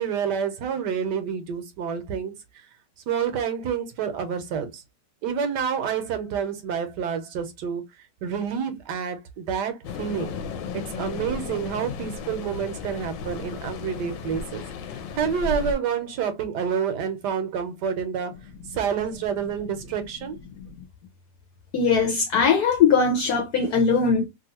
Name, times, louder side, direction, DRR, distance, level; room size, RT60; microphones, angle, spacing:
voice 1, 0.0-2.3 3.1-4.8 5.2-7.9 8.2-10.4 10.7-14.6 15.1-18.4 18.7-20.4, right 7 dB, 75° right, 1.3 m, -28 dB
sound 1, 9.8-15.7, left 4 dB, 90° left, 1.3 m, -34 dB
voice 2, 21.7-24.3, left 5 dB, 70° left, 1.1 m, -20 dB
3.0 x 2.5 x 2.8 m
omnidirectional pair, 1.9 m